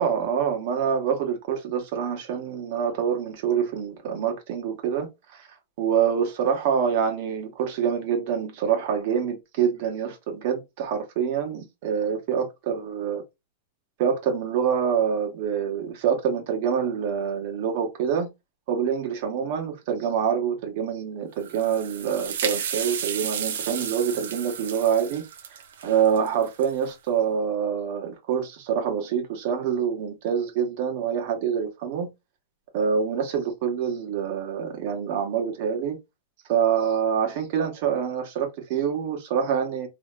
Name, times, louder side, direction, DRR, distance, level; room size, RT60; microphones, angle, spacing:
voice 1, 0.0-5.5 5.8-13.2 14.0-18.3 18.7-25.2 25.8-32.1 32.7-36.0 36.5-39.9, right 7 dB, 50° right, 1.2 m, -26 dB
sound 1, 21.4-26.9, right 8 dB, 85° right, 0.7 m, -33 dB
3.2 x 2.8 x 2.3 m
supercardioid pair, 150°, 0 cm